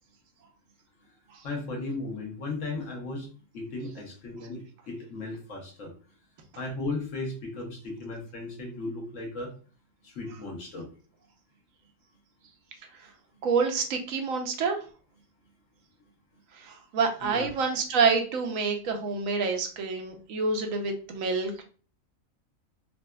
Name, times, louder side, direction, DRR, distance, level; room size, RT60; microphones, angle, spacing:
voice 1, 1.4-3.3 3.5-5.9 6.6-9.5 10.0-10.9 17.2-17.5, left 2 dB, 70° left, 0 dB, 1.3 m, -36 dB
voice 2, 13.4-14.8 16.5-21.6, right 4 dB, 80° right, 4 dB, 1.1 m, -27 dB
4.0 x 2.3 x 2.2 m, 0.39 s
omnidirectional pair, 1.4 m